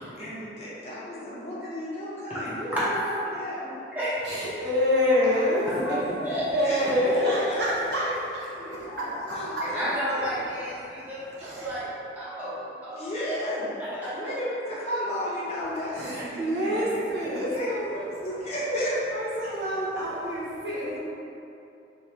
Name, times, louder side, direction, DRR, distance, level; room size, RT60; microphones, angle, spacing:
voice 1, 0.2-3.8 5.2-5.5 6.6-6.9 7.2-8.2 8.5-10.4 12.9-13.7 14.1-17.7 18.2-18.9, equal, 35° left, -8 dB, 0.6 m, -34 dB
voice 2, 2.3-3.2 3.9-4.4 5.7-6.5 6.8-7.2 9.6-11.9 12.2-13.4 13.8-14.3, equal, 10° right, -10 dB, 0.7 m, -32 dB
voice 3, 4.2-8.1 8.3-8.9 10.8-11.0 11.4-11.7 15.9-18.4 18.7-21.0, left 1 dB, 70° right, -7 dB, 0.8 m, -27 dB
2.9 x 2.5 x 3.2 m, 2.7 s
head